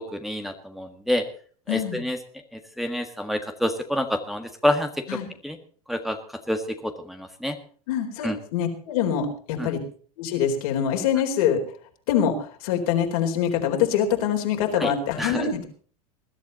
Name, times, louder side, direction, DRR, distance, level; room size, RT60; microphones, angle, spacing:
voice 1, 0.1-1.2 1.7-2.2 2.8-4.9 5.4-5.6 5.9-6.2 6.5-7.5 8.2-8.4 9.6-9.7 14.8-14.9 15.2-15.4, left 1 dB, ahead, 4 dB, 1.7 m, -27 dB
voice 2, 1.7-2.0 5.1-5.3 7.9-9.8 10.2-11.6 12.1-15.7, left 8 dB, 70° left, 3 dB, 4.1 m, -24 dB
21.0 x 12.0 x 4.1 m, 0.43 s
hypercardioid pair, 95°, 20 cm